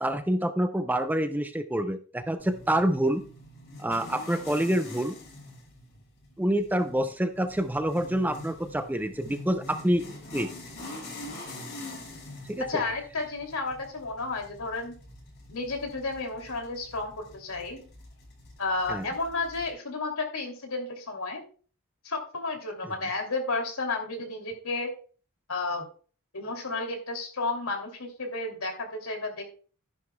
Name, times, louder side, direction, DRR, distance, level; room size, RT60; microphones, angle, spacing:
voice 1, 0.0-3.2 3.8-5.2 6.4-10.0 10.3-10.5 12.5-12.7 18.9-19.1 22.8-23.0, right 1 dB, 10° right, 8 dB, 0.5 m, -27 dB
sound 1, 2.4-19.7, left 1 dB, 55° left, 5.5 m, -45 dB
voice 2, 12.7-14.9 15.5-17.8 18.6-21.4 22.0-24.9 25.5-25.8 26.3-29.4, left 3 dB, 80° left, 3 dB, 2.8 m, -32 dB
13.5 x 10.5 x 2.3 m, 0.40 s
head